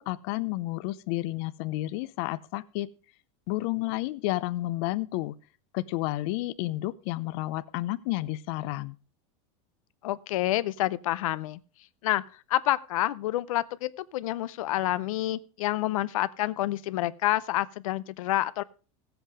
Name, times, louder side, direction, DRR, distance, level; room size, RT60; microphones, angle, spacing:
voice 1, 0.0-2.9 3.5-5.4 5.7-9.0, left 18 dB, 50° left, 15 dB, 0.6 m, -31 dB
voice 2, 10.0-11.6 12.0-12.2 12.5-18.6, left 15 dB, 90° left, 16 dB, 0.6 m, -28 dB
15.5 x 8.0 x 4.8 m, 0.36 s
supercardioid pair, 165°, 17 cm